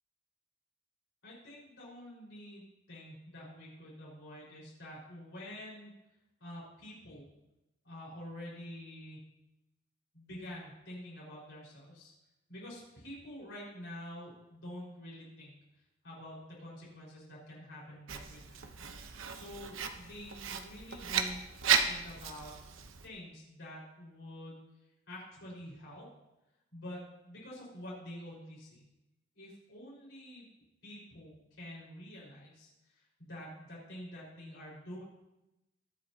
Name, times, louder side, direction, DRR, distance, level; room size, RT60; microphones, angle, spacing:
voice 1, 1.2-2.6 2.9-5.9 6.4-7.2 7.8-9.2 10.1-12.1 12.5-15.5 16.0-18.7 19.3-21.4 21.9-22.6 23.0-24.6 25.1-26.1 26.7-28.8 29.3-30.4 30.8-32.7 33.2-35.0, left 1 dB, 65° left, -6 dB, 4.9 m, -47 dB
Writing, 18.1-23.1, right 7 dB, 85° right, 0.9 m, -34 dB
22.0 x 7.7 x 2.9 m, 0.94 s
head